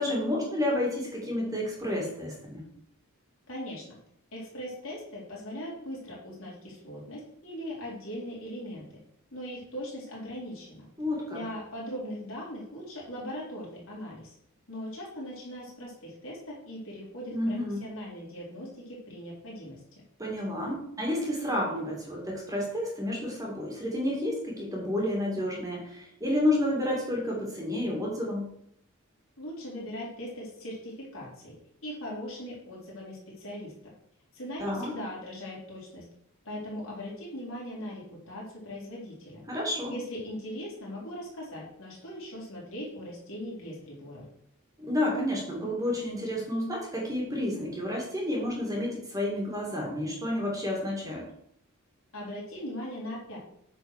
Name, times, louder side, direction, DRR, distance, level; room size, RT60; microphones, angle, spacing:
voice 1, 0.0-2.6 11.0-11.4 17.3-17.9 20.2-28.5 34.6-34.9 39.5-39.9 44.8-51.2, left 1 dB, 15° right, -2 dB, 2.4 m, -30 dB
voice 2, 3.5-4.0 4.3-8.9 9.3-10.9 11.3-14.3 14.7-20.0 29.4-31.5 31.8-33.9 34.3-36.0 36.5-39.4 39.9-44.2 52.1-53.4, equal, 65° left, -5 dB, 4.0 m, -40 dB
8.8 x 4.6 x 6.5 m, 0.73 s
head